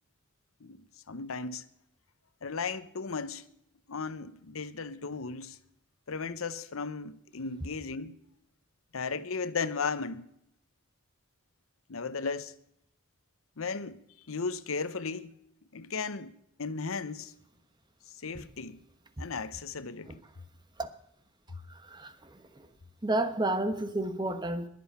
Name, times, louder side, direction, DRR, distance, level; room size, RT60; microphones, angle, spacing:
voice 1, 1.1-1.7 2.4-3.5 3.9-5.6 6.1-8.2 8.9-10.3 11.9-12.5 13.6-14.0 14.3-15.4 15.7-17.3 18.1-18.8 19.2-20.2, left 4 dB, 85° left, 0.8 m, -35 dB
voice 2, 21.7-22.7 23.0-24.7, right 2 dB, 20° right, 1.2 m, -31 dB
22.0 x 7.8 x 5.6 m
head